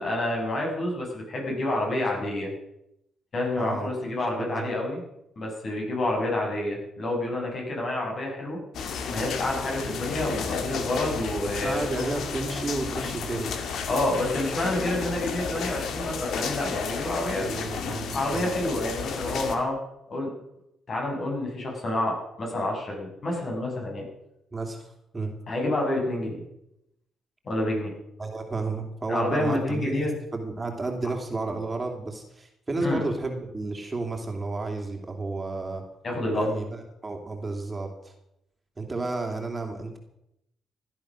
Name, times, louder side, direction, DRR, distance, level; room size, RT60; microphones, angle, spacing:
voice 1, 0.0-2.5 3.3-5.0 5.4-8.6 9.1-12.0 13.9-17.4 18.1-19.8 20.1-20.3 20.9-24.1 25.5-26.4 27.4-27.9 29.1-30.1 32.8-33.0 36.0-36.5, left 1 dB, 50° left, 0 dB, 7.3 m, -28 dB
voice 2, 3.6-3.9 4.2-4.7 11.4-13.5 17.4-18.5 24.5-25.4 28.2-35.8 36.3-38.1 38.8-40.0, right 3 dB, 25° right, 3 dB, 3.0 m, -32 dB
sound 1, 8.7-19.5, left 5 dB, 70° left, 2.3 m, -32 dB
16.5 x 11.5 x 6.4 m, 0.82 s
cardioid pair, 90°, 0 cm